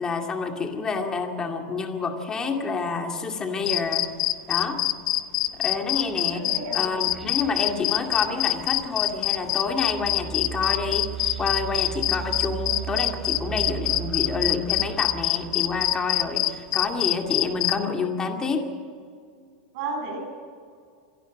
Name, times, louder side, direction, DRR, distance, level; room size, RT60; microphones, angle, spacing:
voice 1, 0.0-4.1 4.5-4.8 5.6-6.5 6.7-11.1 11.4-18.7, left 4 dB, 15° left, 4 dB, 2.2 m, -28 dB
sound 1, 3.7-17.8, left 16 dB, 55° left, 1.0 m, -24 dB
voice 2, 5.9-6.9 19.7-20.2, right 3 dB, 50° right, 2 dB, 7.4 m, -33 dB
sound 2, 7.0-16.3, right 8 dB, ahead, 3.3 m, -37 dB
26.5 x 12.0 x 9.3 m, 2.2 s
supercardioid pair, 160°, 4 cm